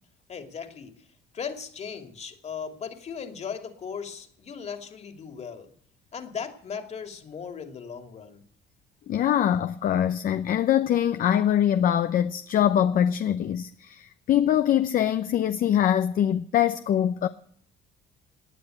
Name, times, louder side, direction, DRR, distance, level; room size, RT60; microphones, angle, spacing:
voice 1, 0.3-1.1 1.3-5.7 6.1-8.4, left 6 dB, 40° left, 2.6 m, -37 dB
voice 2, 9.1-17.3, left 10 dB, 55° left, 0.8 m, -23 dB
18.5 x 9.6 x 7.8 m
cardioid pair, 110°, 17 cm